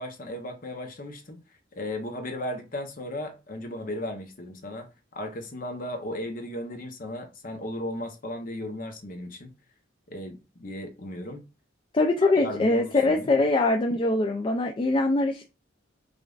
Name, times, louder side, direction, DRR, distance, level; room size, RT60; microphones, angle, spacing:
voice 1, 0.0-1.4 1.7-9.5 10.1-11.4 12.2-13.4, left 1 dB, 45° left, 0.8 m, -36 dB
voice 2, 11.9-15.4, left 2 dB, 25° left, 0.3 m, -23 dB
5.0 x 2.5 x 2.4 m
head